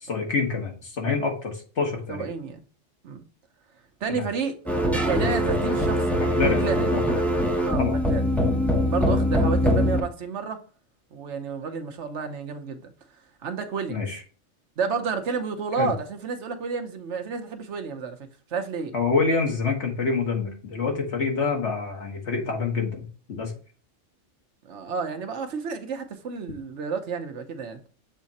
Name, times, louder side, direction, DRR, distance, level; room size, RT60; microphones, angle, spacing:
voice 1, 0.0-2.3 4.1-4.3 6.2-6.6 6.9-7.0 7.8-8.0 13.9-14.2 15.8-15.9 18.9-23.5, left 4 dB, 60° left, 1.7 m, -26 dB
voice 2, 2.1-2.6 3.0-3.2 4.0-6.9 7.6-8.2 8.9-10.6 11.1-12.9 13.4-14.0 14.8-18.2 18.5-18.9 24.7-27.8, right 5 dB, 70° right, 1.1 m, -31 dB
sound 1, 4.7-10.0, equal, ahead, 0.7 m, -22 dB
7.3 x 3.7 x 4.1 m
omnidirectional pair, 1.3 m